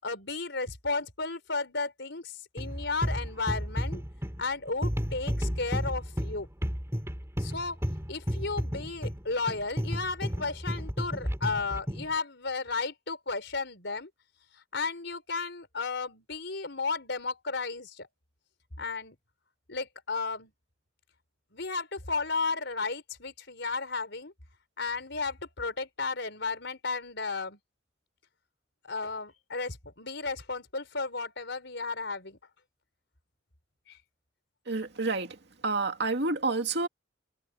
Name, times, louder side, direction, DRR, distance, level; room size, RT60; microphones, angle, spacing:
voice 1, 0.0-4.0 4.4-6.5 7.4-7.8 8.1-14.1 14.5-18.1 18.8-19.2 19.7-20.5 21.5-24.3 24.8-27.6 28.8-32.4 33.9-34.0, left 4 dB, 65° left, 5.1 m, -34 dB
sound 1, 2.6-12.1, equal, 15° right, 4.1 m, -32 dB
voice 2, 34.7-36.9, right 3 dB, 60° right, 2.4 m, -29 dB
head